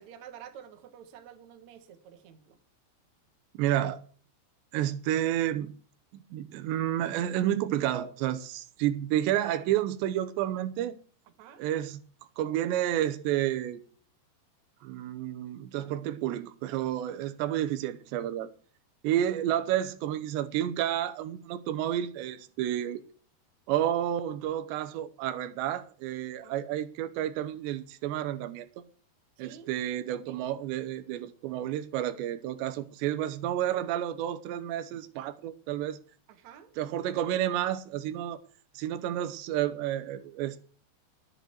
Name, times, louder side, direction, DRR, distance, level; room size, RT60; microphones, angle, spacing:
voice 1, 0.0-2.6 11.3-11.7 26.4-26.7 29.4-29.7 30.3-30.5 36.3-36.7, right 9 dB, 60° right, 2.0 m, -50 dB
voice 2, 3.6-4.0 4.7-5.7 6.1-11.0 11.6-12.0 12.4-13.8 14.8-18.5 19.0-23.0 23.7-28.7 29.4-36.0 36.8-38.4 38.8-40.6, right 12 dB, 85° right, 3.1 m, -30 dB
10.5 x 7.8 x 8.1 m
omnidirectional pair, 4.9 m